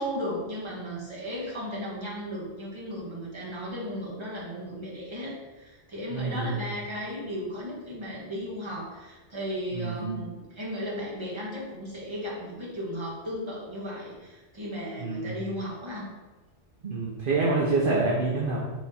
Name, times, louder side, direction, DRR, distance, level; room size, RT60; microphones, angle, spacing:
voice 1, 0.0-16.1, equal, 25° right, -6 dB, 1.6 m, -35 dB
voice 2, 6.1-6.6 9.7-10.2 15.0-15.3 16.8-18.6, right 3 dB, 50° right, -4 dB, 1.0 m, -27 dB
6.4 x 3.5 x 4.3 m, 1.2 s
omnidirectional pair, 1.2 m